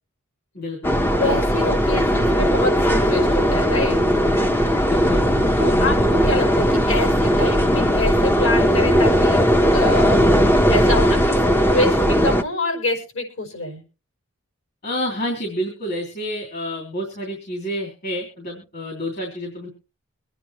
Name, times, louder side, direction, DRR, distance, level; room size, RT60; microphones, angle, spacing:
voice 1, 0.5-1.0 4.9-5.3 14.8-19.7, equal, 50° left, -1 dB, 3.4 m, -29 dB
sound 1, 0.8-12.4, equal, 10° left, 0.8 m, -18 dB
voice 2, 1.1-4.0 5.6-9.4 9.7-13.8, left 2 dB, 65° left, 3 dB, 5.3 m, -26 dB
24.5 x 10.0 x 2.9 m, 0.33 s
head